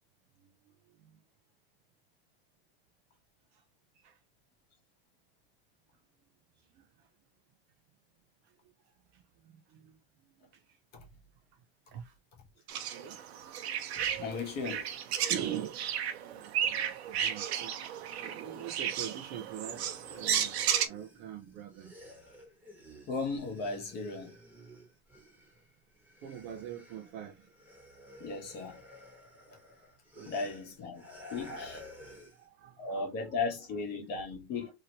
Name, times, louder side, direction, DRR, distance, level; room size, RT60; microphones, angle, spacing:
sound 1, 12.7-20.9, right 9 dB, 90° right, 0.7 m, -33 dB
voice 1, 13.9-14.9 23.1-24.3 28.2-28.8 30.2-31.0 31.3-31.8 32.8-34.7, left 4 dB, 30° left, 1.1 m, -36 dB
voice 2, 15.3-15.8 16.2-17.8 18.2-20.6 20.9-21.9 26.2-27.4 30.2-30.3 32.1-33.1 34.0-34.1 34.6-34.7, right 10 dB, 35° right, 0.5 m, -43 dB
sound 2, 19.5-25.7 25.9-32.5, equal, 5° right, 1.2 m, -52 dB
2.9 x 2.8 x 2.8 m
supercardioid pair, 160°, 31 cm